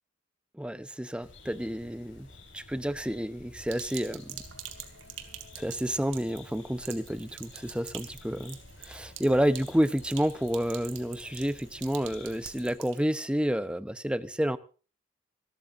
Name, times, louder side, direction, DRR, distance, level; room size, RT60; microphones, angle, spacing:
voice 1, 0.5-2.3 2.5-4.4 5.6-14.6, equal, 5° right, 12 dB, 0.8 m, -30 dB
sound 1, 1.2-12.7, left 2 dB, 85° left, 7.5 m, -51 dB
Sink (filling or washing), 3.6-13.0, right 10 dB, 80° right, 2.8 m, -46 dB
27.0 x 13.5 x 2.6 m, 0.36 s
head